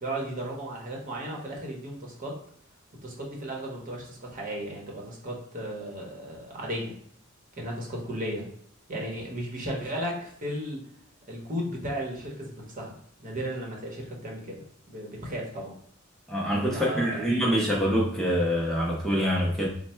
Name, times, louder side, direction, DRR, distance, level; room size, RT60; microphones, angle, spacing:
voice 1, 0.0-2.4 3.0-6.9 7.6-8.5 8.9-10.8 11.3-12.9 13.2-15.7 16.7-17.3, right 1 dB, 40° right, -1 dB, 1.0 m, -35 dB
voice 2, 16.3-19.7, equal, ahead, -4 dB, 0.6 m, -25 dB
3.3 x 2.1 x 4.3 m, 0.64 s
head